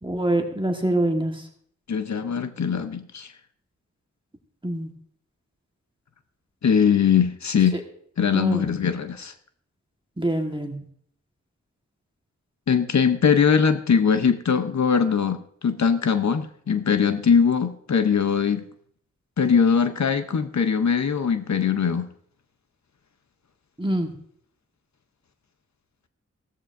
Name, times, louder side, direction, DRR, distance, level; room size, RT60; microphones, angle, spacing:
voice 1, 0.0-1.3 4.6-4.9 8.3-8.8 10.2-10.8 23.8-24.1, right 1 dB, 15° right, 3 dB, 1.4 m, -25 dB
voice 2, 1.9-3.3 6.6-7.8 8.2-9.3 12.7-18.6 19.4-22.1, left 6 dB, 70° left, 9 dB, 0.8 m, -21 dB
15.0 x 13.5 x 2.6 m, 0.64 s
wide cardioid pair, 70°, 29 cm